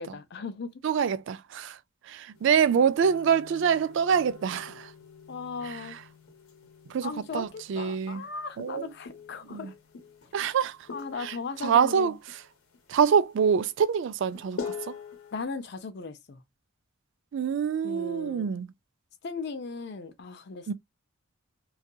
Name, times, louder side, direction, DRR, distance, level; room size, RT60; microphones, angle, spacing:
voice 1, 0.0-0.8 5.3-6.0 7.0-9.7 10.9-12.2 15.3-16.4 17.8-18.5 19.2-20.7, left 4 dB, 55° left, 0.5 m, -37 dB
voice 2, 0.8-1.8 2.1-4.9 5.7-5.8 6.9-8.2 8.6-8.9 9.5-9.7 10.3-10.8 11.2-11.3 11.6-12.1 12.9-14.9 17.3-18.7 20.7-20.8, right 7 dB, 60° right, 0.3 m, -25 dB
sound 1, 2.3-15.5, left 5 dB, 85° left, 0.8 m, -45 dB
2.7 x 2.3 x 2.2 m
head